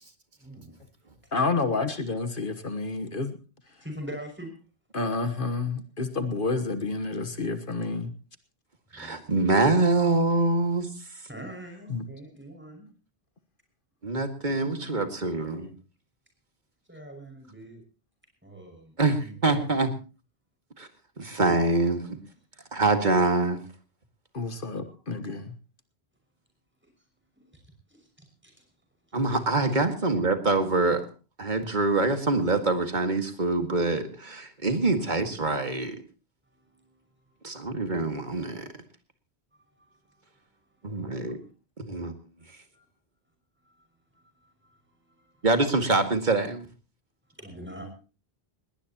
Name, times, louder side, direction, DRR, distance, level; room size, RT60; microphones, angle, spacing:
voice 1, 0.4-0.7 1.5-1.7 3.8-4.5 8.9-9.2 10.1-10.2 11.3-12.9 14.2-15.0 16.9-17.8 18.4-19.6 24.5-24.7 26.8-26.9 27.3-27.6 27.9-28.6 29.7-29.8 35.0-35.1 36.5-37.6 39.5-41.1 42.4-42.9 43.6-45.5 47.2-47.9, equal, 10° right, 3 dB, 6.1 m, -45 dB
voice 2, 1.3-3.4 4.9-8.1 11.9-12.0 24.3-25.5, left 3 dB, 55° left, 10 dB, 1.5 m, -29 dB
voice 3, 8.9-11.2 14.0-15.7 19.0-19.9 20.8-20.9 21.2-22.2 22.7-23.7 29.1-31.0 31.4-36.0 37.4-38.7 40.8-41.4 41.8-42.1 45.4-46.7, right 2 dB, 45° right, 7 dB, 2.1 m, -25 dB
20.0 x 18.5 x 2.9 m, 0.35 s
omnidirectional pair, 1.1 m